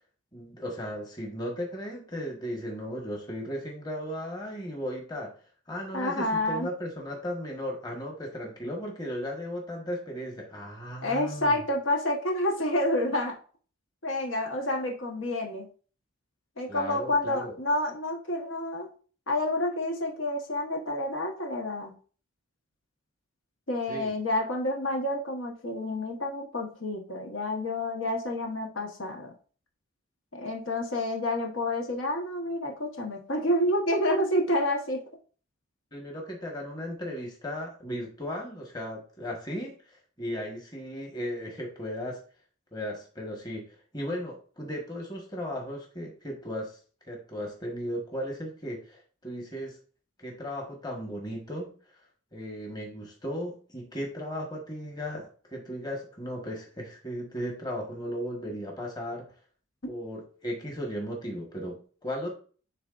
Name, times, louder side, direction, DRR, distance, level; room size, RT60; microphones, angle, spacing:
voice 1, 0.3-5.3 5.7-11.6 16.7-17.5 23.9-24.1 35.9-39.7 40.2-42.2 42.7-46.8 47.1-49.8 50.2-51.7 52.3-59.3 59.9-62.3, equal, 20° left, 0 dB, 1.3 m, -36 dB
voice 2, 5.9-6.7 11.0-13.4 14.0-15.7 16.6-18.9 19.3-21.9 23.7-29.3 30.3-35.0, left 1 dB, 65° left, 1 dB, 1.2 m, -29 dB
10.5 x 3.6 x 2.5 m, 0.40 s
head